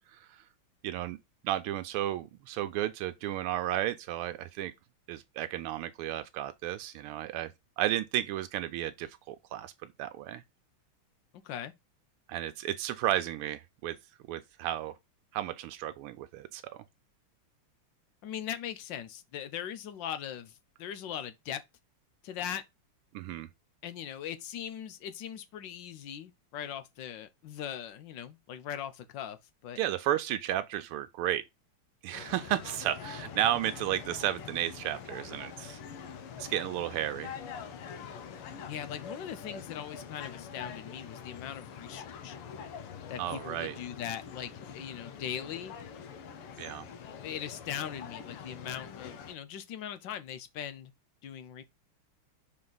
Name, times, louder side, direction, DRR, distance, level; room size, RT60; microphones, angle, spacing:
voice 1, 0.1-0.4 0.8-1.2 1.4-4.7 5.1-7.5 7.8-10.4 12.3-14.0 14.3-14.9 15.3-16.6 23.1-23.5 29.8-31.4 32.0-35.8 36.4-37.4 43.2-43.7 46.6-46.9, right 13 dB, 85° right, 1.5 m, -33 dB
voice 2, 18.2-21.6 22.2-22.6 23.8-29.4 29.6-29.8 38.6-42.4 43.1-45.7 47.2-50.9 51.2-51.6, left 9 dB, 65° left, 1.4 m, -40 dB
sound 1, 32.1-49.3, left 7 dB, 85° left, 1.9 m, -45 dB
6.1 x 4.3 x 3.9 m
omnidirectional pair, 2.4 m